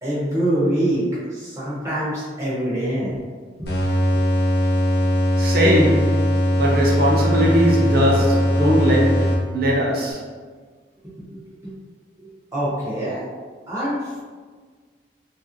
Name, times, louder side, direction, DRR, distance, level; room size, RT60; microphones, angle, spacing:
voice 1, 0.0-1.0 1.3-3.2 3.6-3.7 4.1-4.2 11.2-11.7 12.2-13.2 13.7-14.2, right 1 dB, 15° right, -8 dB, 0.6 m, -25 dB
sound 1, 3.6-9.8, equal, 60° left, 0.9 m, -20 dB
voice 2, 5.4-10.3, equal, 55° right, -3 dB, 0.7 m, -20 dB
3.0 x 2.4 x 2.8 m, 1.5 s
head